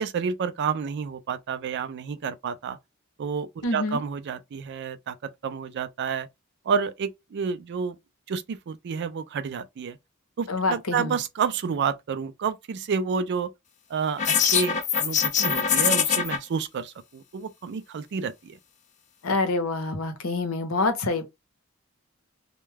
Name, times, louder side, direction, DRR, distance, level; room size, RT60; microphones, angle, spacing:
voice 1, 0.0-2.8 3.2-6.3 6.7-8.0 8.3-10.0 10.4-13.5 13.9-18.6, right 6 dB, 55° right, 0.4 m, -30 dB
voice 2, 3.6-4.0 10.5-11.2 19.2-21.2, left 3 dB, 85° left, 0.8 m, -26 dB
sound 1, 14.2-16.4, left 7 dB, 35° left, 0.5 m, -23 dB
2.2 x 2.1 x 3.2 m
head